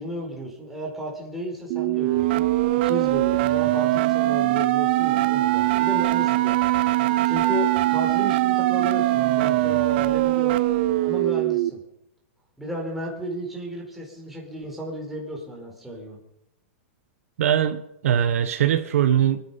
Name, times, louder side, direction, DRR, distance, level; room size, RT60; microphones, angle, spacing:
voice 1, 0.0-2.4 2.8-6.8 7.2-10.6 11.0-11.8 12.6-16.2, equal, ahead, 4.4 m, -34 dB
sound 1, 1.7-11.7, right 16 dB, 45° right, 0.7 m, -21 dB
voice 2, 17.4-19.4, right 10 dB, 75° right, 1.3 m, -21 dB
24.5 x 10.5 x 5.6 m
supercardioid pair, 160°, 8 cm